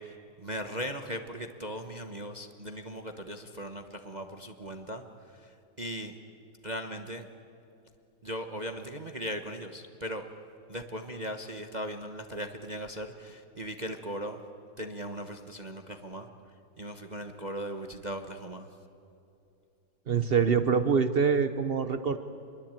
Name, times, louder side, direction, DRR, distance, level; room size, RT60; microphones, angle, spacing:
voice 1, 0.0-6.1 6.6-7.3 8.2-10.2 10.7-14.4 14.8-16.3 16.8-18.7, equal, 30° right, 6 dB, 1.0 m, -38 dB
voice 2, 20.1-22.2, right 6 dB, 80° right, 11 dB, 0.5 m, -25 dB
27.0 x 22.0 x 9.0 m, 2.7 s
omnidirectional pair, 2.2 m